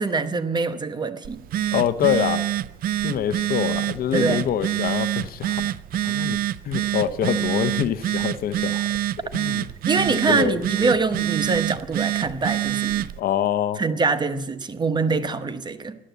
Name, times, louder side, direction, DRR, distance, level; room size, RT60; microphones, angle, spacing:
voice 1, 0.0-1.4 4.1-4.5 9.9-13.1 13.8-16.0, right 4 dB, 25° right, 9 dB, 1.1 m, -24 dB
Telephone, 1.2-13.2, right 13 dB, 60° right, 0.5 m, -26 dB
voice 2, 1.7-2.4 3.0-5.7 6.0-6.4 6.6-9.0 9.3-9.6 10.0-10.9 13.2-13.8, left 9 dB, 60° left, 12 dB, 0.9 m, -25 dB
14.0 x 11.5 x 8.1 m, 0.97 s
cardioid pair, 110°, 17 cm